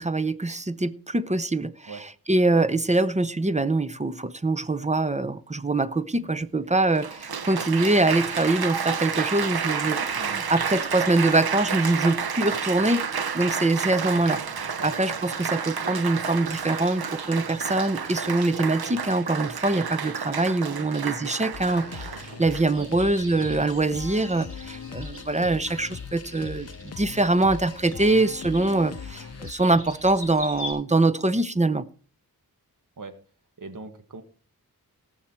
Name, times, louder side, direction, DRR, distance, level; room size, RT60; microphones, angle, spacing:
voice 1, 0.0-13.1 13.3-22.1 22.4-31.9, right 2 dB, 20° right, 0.7 m, -24 dB
Applause, 6.2-6.3 6.9-22.9 23.6-23.9, right 6 dB, 85° right, 1.1 m, -30 dB
voice 2, 20.8-21.1 22.7-22.9 33.0-33.1 33.6-34.2, right 4 dB, 60° right, 1.7 m, -40 dB
sound 1, 21.5-29.5, left 7 dB, 45° left, 0.6 m, -40 dB
sound 2, 22.7-30.7, left 1 dB, 35° right, 6.1 m, -42 dB
18.0 x 6.4 x 4.5 m
wide cardioid pair, 65°, 37 cm